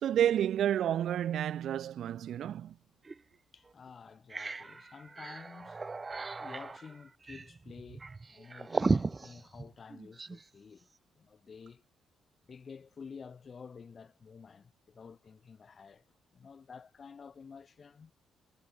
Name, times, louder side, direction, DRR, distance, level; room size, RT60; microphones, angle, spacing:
voice 1, 0.0-2.8, right 10 dB, 70° right, 0.5 m, -30 dB
sound 1, 3.0-3.2 3.7-3.8 4.1-10.4, right 3 dB, 25° right, 3.1 m, -36 dB
voice 2, 3.5-5.8 6.3-10.9 11.1-11.8 12.5-16.0 16.3-18.1, left 5 dB, 40° left, 5.0 m, -51 dB
cardioid pair, 90°, 0 cm